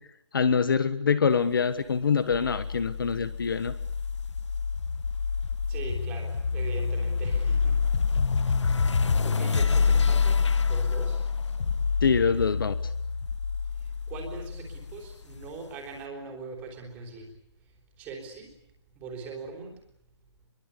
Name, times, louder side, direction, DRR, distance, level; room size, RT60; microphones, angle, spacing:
voice 1, 0.3-3.7 12.0-12.7, left 6 dB, 50° left, 14 dB, 1.3 m, -24 dB
sound 1, 2.3-15.5, left 5 dB, 85° left, 1.3 m, -27 dB
voice 2, 5.7-7.8 9.0-11.2 14.1-17.3 18.0-18.5 19.0-19.7, right 4 dB, 10° right, 2 dB, 3.7 m, -41 dB
25.0 x 23.0 x 8.4 m, 0.74 s
hypercardioid pair, 175°, 15 cm